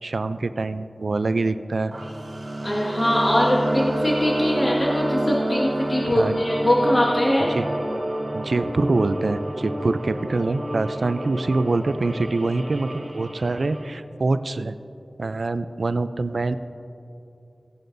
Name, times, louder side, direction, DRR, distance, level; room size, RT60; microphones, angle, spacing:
voice 1, 0.0-1.9 6.1-6.4 7.5-7.7 8.3-14.8 15.2-16.6, right 3 dB, 80° right, 12 dB, 0.4 m, -25 dB
sound 1, 1.9-13.9, right 1 dB, 55° right, 1.0 m, -29 dB
voice 2, 2.6-7.5, left 1 dB, 45° left, -5 dB, 1.7 m, -21 dB
17.0 x 10.5 x 2.6 m, 2.7 s
wide cardioid pair, 55°, 0 cm